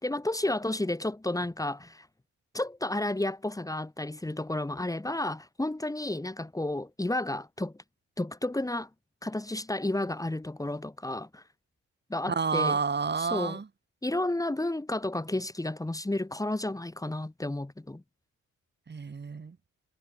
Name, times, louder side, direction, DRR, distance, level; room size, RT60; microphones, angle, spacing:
voice 1, 0.0-2.1 2.5-7.7 8.2-8.9 9.2-11.4 12.1-12.8 13.2-13.6 14.0-18.0, left 1 dB, 10° left, 4.6 m, -32 dB
voice 2, 12.3-13.7 18.9-19.6, right 5 dB, 35° right, 6.5 m, -29 dB
cardioid pair, 90°, 30 cm